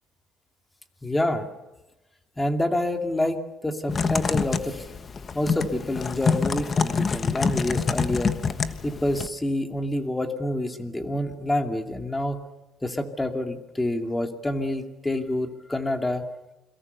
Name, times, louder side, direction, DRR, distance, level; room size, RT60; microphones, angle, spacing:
voice 1, 1.0-1.5 2.4-4.9 5.3-8.3 8.8-12.4 12.8-16.2, left 1 dB, 10° left, 5 dB, 2.4 m, -27 dB
Typing, 3.9-9.3, left 5 dB, 30° left, 1.2 m, -26 dB
29.0 x 22.5 x 6.8 m, 1.0 s
cardioid pair, 130°, 0 cm